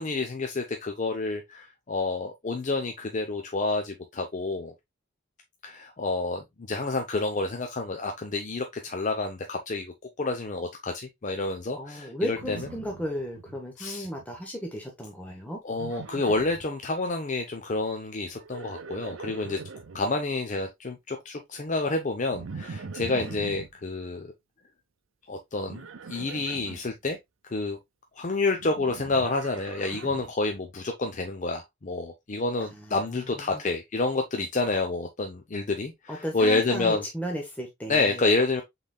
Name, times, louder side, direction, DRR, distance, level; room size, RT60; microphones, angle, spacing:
voice 1, 0.0-4.7 5.6-9.9 10.2-12.6 13.8-14.1 15.6-19.6 19.9-24.3 25.3-25.8 26.1-27.2 27.5-27.8 28.2-37.0 37.9-38.6, left 3 dB, 40° left, 0.6 m, -29 dB
voice 2, 11.8-15.6 23.2-23.4 32.6-33.6 36.1-38.3, equal, 10° left, 0.9 m, -35 dB
Livestock farm animals working animals, 12.3-13.6 13.9-14.4 15.7-16.7 18.3-20.0 22.3-23.7 25.7-26.8 28.6-30.3, right 4 dB, 75° right, 0.6 m, -41 dB
5.5 x 3.9 x 2.2 m
head